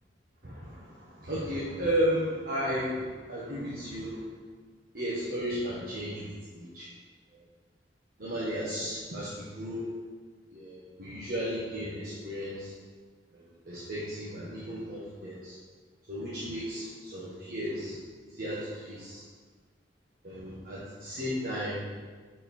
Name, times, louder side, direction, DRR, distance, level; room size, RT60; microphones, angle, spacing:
voice 1, 0.4-4.2 4.9-6.9 7.3-7.4 8.2-9.9 10.5-12.7 13.3-15.6 16.1-18.0 18.2-19.2 20.2-21.8, equal, 55° right, -8 dB, 1.3 m, -34 dB
6.5 x 4.3 x 4.4 m, 1.5 s
head